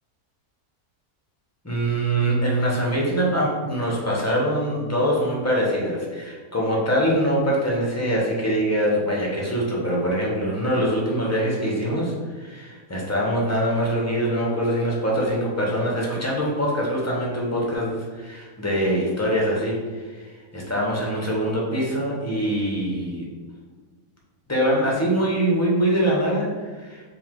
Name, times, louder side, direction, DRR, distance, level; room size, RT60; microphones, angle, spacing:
voice 1, 1.6-23.3 24.5-27.0, equal, 15° left, -3 dB, 0.7 m, -23 dB
4.8 x 2.6 x 3.7 m, 1.5 s
omnidirectional pair, 1.6 m